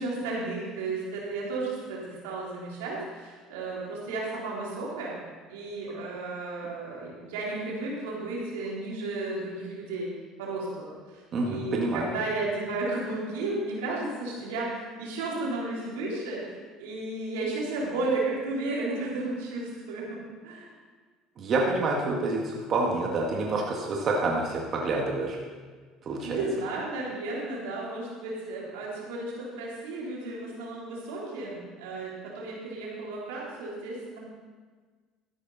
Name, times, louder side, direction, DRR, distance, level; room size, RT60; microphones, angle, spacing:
voice 1, 0.0-5.2 5.5-10.1 10.4-20.7 26.2-34.2, right 2 dB, 90° right, -5 dB, 3.6 m, -33 dB
voice 2, 11.3-12.1 21.4-25.4 26.0-26.4, right 3 dB, 45° right, -1 dB, 1.8 m, -27 dB
14.0 x 10.0 x 4.2 m, 1.5 s
supercardioid pair, 90°, 0 cm